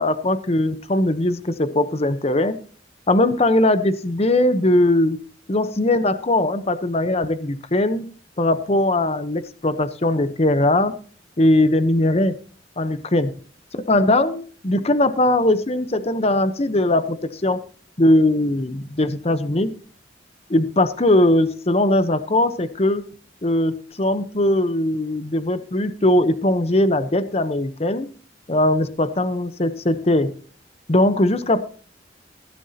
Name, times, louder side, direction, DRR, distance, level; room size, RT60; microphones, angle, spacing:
voice 1, 0.0-2.6 3.1-5.2 5.5-8.1 8.4-11.0 11.4-12.3 12.8-13.3 13.9-17.6 18.0-19.7 20.5-23.0 23.4-28.1 28.5-30.3 30.9-31.7, left 1 dB, 35° left, 11 dB, 0.9 m, -20 dB
16.5 x 11.0 x 2.9 m, 0.40 s
head